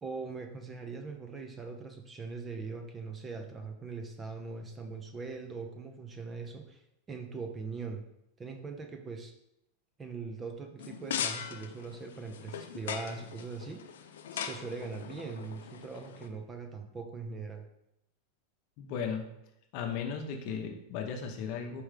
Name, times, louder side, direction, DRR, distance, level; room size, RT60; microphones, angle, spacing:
voice 1, 0.0-6.8 7.1-8.1 8.4-9.3 10.0-13.9 14.3-17.7, right 4 dB, 20° right, 5 dB, 0.5 m, -41 dB
sound 1, 10.8-16.3, left 8 dB, 85° left, 0.4 m, -40 dB
voice 2, 18.8-19.3 19.7-21.8, left 6 dB, 55° left, 3 dB, 0.7 m, -36 dB
4.5 x 3.5 x 3.3 m, 0.82 s
hypercardioid pair, 125°, 0 cm